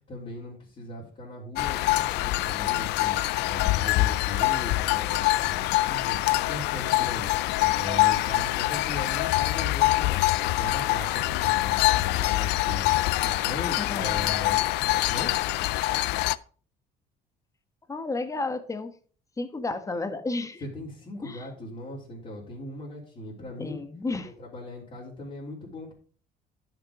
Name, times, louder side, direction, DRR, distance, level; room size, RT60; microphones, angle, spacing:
voice 1, 0.0-14.6 14.9-15.3 20.6-23.8 24.2-25.9, left 1 dB, 40° left, -6 dB, 3.7 m, -39 dB
sound 1, 1.6-16.4, left 18 dB, 85° left, 0.4 m, -25 dB
voice 2, 13.8-14.3 17.9-18.9 19.4-20.6 21.2-21.5 23.6-24.3, left 3 dB, 20° left, 9 dB, 1.3 m, -32 dB
11.0 x 6.3 x 4.9 m, 0.43 s
cardioid pair, 110°, 17 cm